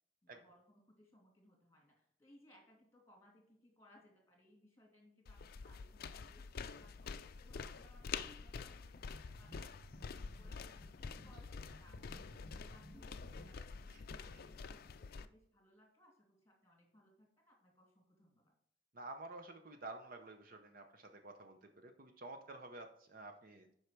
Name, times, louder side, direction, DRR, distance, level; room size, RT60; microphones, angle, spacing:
voice 1, 0.2-9.7 10.0-12.2 12.5-18.5, left 1 dB, 15° left, 0 dB, 2.7 m, -66 dB
sound 1, 5.3-15.3, left 5 dB, 50° left, 0.4 m, -47 dB
sound 2, 9.0-14.1, equal, 20° right, 2.1 m, -59 dB
voice 2, 18.9-23.7, right 2 dB, 50° right, 6 dB, 0.7 m, -51 dB
8.2 x 5.6 x 4.6 m, 0.70 s
head